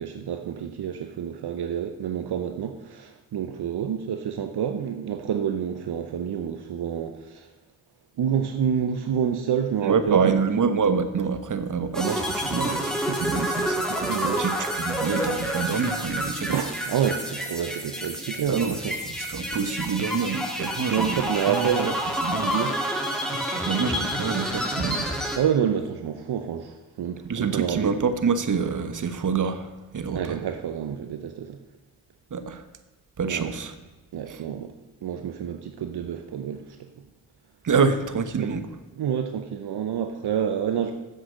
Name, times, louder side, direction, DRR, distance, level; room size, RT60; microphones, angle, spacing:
voice 1, 0.0-7.5 8.2-10.5 14.1-14.4 16.5-19.0 20.9-22.0 22.4-22.8 25.4-27.9 30.1-31.6 33.2-33.6 34.1-34.7 35.0-36.8 38.4-38.5 38.9-40.9, right 8 dB, 65° right, 6 dB, 0.9 m, -28 dB
voice 2, 9.8-16.6 18.5-18.7 19.3-21.7 22.2-22.6 23.7-25.1 27.2-30.2 32.3-32.6 33.2-33.7 34.3-34.4 37.6-38.6, right 5 dB, 45° right, 10 dB, 1.1 m, -26 dB
sound 1, 11.9-25.4, equal, ahead, 2.2 m, -29 dB
7.5 x 6.6 x 7.6 m, 1.2 s
supercardioid pair, 50°, 42 cm